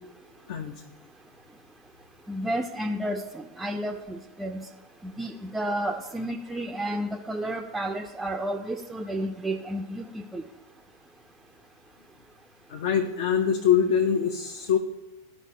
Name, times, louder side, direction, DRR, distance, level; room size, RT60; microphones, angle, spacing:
voice 1, 0.5-0.8 12.7-14.8, left 8 dB, 50° left, 5 dB, 0.5 m, -24 dB
voice 2, 2.3-4.6 5.0-10.4, right 1 dB, 10° right, 4 dB, 0.4 m, -31 dB
13.0 x 5.1 x 3.1 m, 1.1 s
figure-of-eight pair, 90°, 0 cm